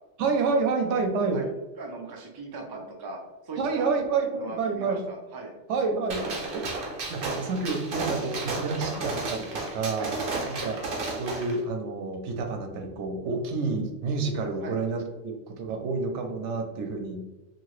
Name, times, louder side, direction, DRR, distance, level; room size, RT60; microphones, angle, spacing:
voice 1, 0.2-1.4 3.6-5.0 5.7-6.8 7.1-10.1 10.6-10.8 11.2-17.2, right 4 dB, 85° right, 4 dB, 0.9 m, -29 dB
voice 2, 1.8-3.2 3.4-3.9 4.3-5.5 10.0-10.1 10.6-10.7 14.6-14.8, right 3 dB, 35° right, 0 dB, 0.3 m, -39 dB
Gunshot gunfire, 6.1-11.5, right 3 dB, 55° right, 0.8 m, -33 dB
2.8 x 2.8 x 3.0 m, 1.0 s
omnidirectional pair, 1.2 m